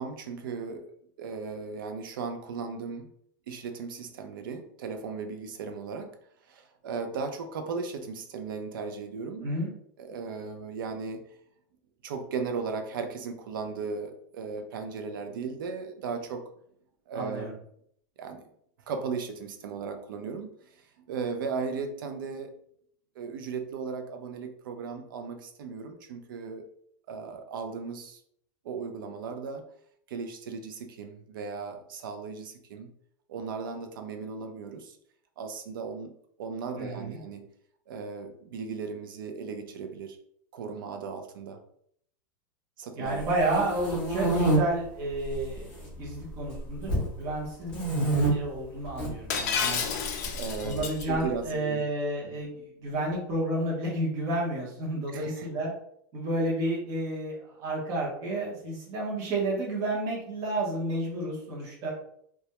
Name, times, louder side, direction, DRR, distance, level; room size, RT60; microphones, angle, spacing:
voice 1, 0.0-3.1 3.5-6.1 6.5-9.5 10.0-11.2 12.0-16.5 17.1-17.5 18.2-18.4 18.9-22.5 23.2-26.7 27.1-28.2 28.6-29.6 30.1-32.9 33.3-35.0 35.4-36.1 36.4-37.5 37.9-40.2 40.5-41.6 42.8-43.2 50.3-51.8 55.1-55.5, right 5 dB, 85° right, 6 dB, 0.5 m, -36 dB
voice 2, 9.4-9.7 17.1-17.5 36.8-37.2 43.0-46.9 47.2-47.7 48.3-49.8 50.6-55.7 56.1-61.9, right 1 dB, 30° right, -4 dB, 0.7 m, -31 dB
sound 1, 43.2-44.6 45.2-45.8 46.1-47.1 47.7-48.3 48.8-49.1 50.2-51.2, right 2 dB, 10° left, 0.8 m, -27 dB
Shatter, 49.3-51.0, left 6 dB, 50° left, 0.4 m, -30 dB
2.2 x 2.1 x 2.8 m, 0.68 s
supercardioid pair, 175°, 11 cm